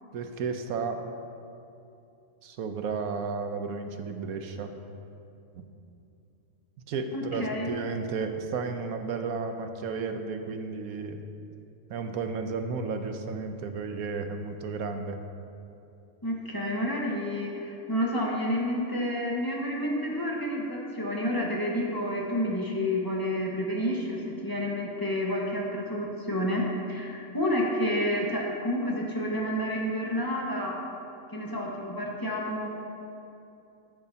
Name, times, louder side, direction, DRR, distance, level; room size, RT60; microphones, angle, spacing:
voice 1, 0.1-1.0 2.4-4.8 5.6-5.7 6.8-11.2 11.9-15.2, right 4 dB, 80° right, 6 dB, 1.2 m, -33 dB
voice 2, 7.1-7.8 16.2-30.8 31.3-32.7, equal, 15° left, -3 dB, 1.4 m, -29 dB
14.0 x 11.0 x 2.8 m, 2.7 s
omnidirectional pair, 1.5 m